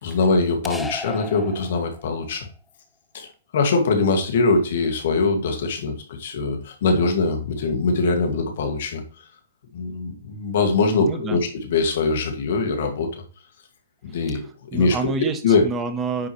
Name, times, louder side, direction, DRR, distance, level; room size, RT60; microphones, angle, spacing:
voice 1, 0.0-2.5 3.1-9.3 9.7-13.2 14.0-14.4 14.7-15.0 15.4-15.6, left 3 dB, 65° left, 3 dB, 2.0 m, -22 dB
sound 1, 0.6-2.3, left 2 dB, 5° left, 0.5 m, -35 dB
voice 2, 10.9-11.4 14.7-16.3, right 4 dB, 20° right, 8 dB, 1.1 m, -28 dB
9.6 x 4.6 x 3.1 m, 0.40 s
hypercardioid pair, 140°, 0 cm